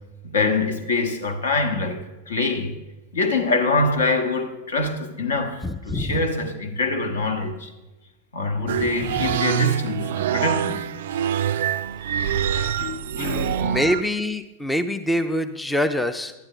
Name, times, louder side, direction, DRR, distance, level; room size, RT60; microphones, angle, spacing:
voice 1, 0.2-2.8 3.1-7.7 8.3-10.9 12.5-13.5, left 3 dB, 65° left, 1.1 m, -25 dB
voice 2, 5.6-6.2 9.2-9.3 13.1-16.3, left 1 dB, 5° left, 0.5 m, -25 dB
sound 1, 8.7-14.0, right 9 dB, 55° right, 0.3 m, -25 dB
12.0 x 9.7 x 3.8 m
figure-of-eight pair, 90°, 0 cm